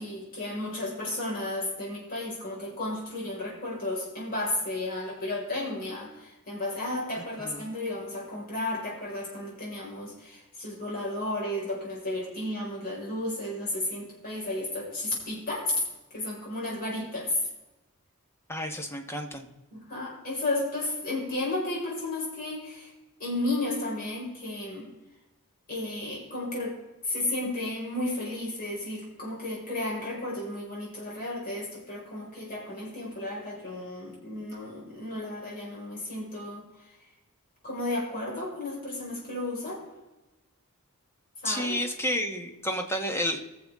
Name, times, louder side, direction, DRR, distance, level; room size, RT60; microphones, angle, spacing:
voice 1, 0.0-15.8 16.1-17.4 19.7-22.9 23.2-24.9 25.7-26.8 27.0-36.6 37.6-39.8 41.4-41.8, left 2 dB, 40° left, -4 dB, 5.0 m, -33 dB
voice 2, 7.4-7.7 18.5-19.5 41.4-43.4, equal, 10° left, 4 dB, 1.2 m, -31 dB
20.5 x 7.1 x 3.6 m, 1.0 s
head